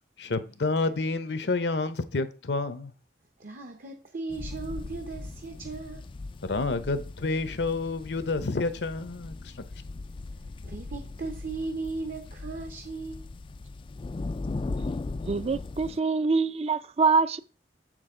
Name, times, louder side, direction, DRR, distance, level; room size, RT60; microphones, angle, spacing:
voice 1, 0.2-2.9 6.4-9.8, left 3 dB, 70° left, 0.8 m, -29 dB
voice 2, 3.4-6.0 10.6-13.3, right 3 dB, 55° right, 0.9 m, -37 dB
sound 1, 4.3-16.0, left 3 dB, 30° left, 0.3 m, -38 dB
voice 3, 15.2-17.4, right 4 dB, 35° right, 0.5 m, -25 dB
7.5 x 6.3 x 3.7 m
head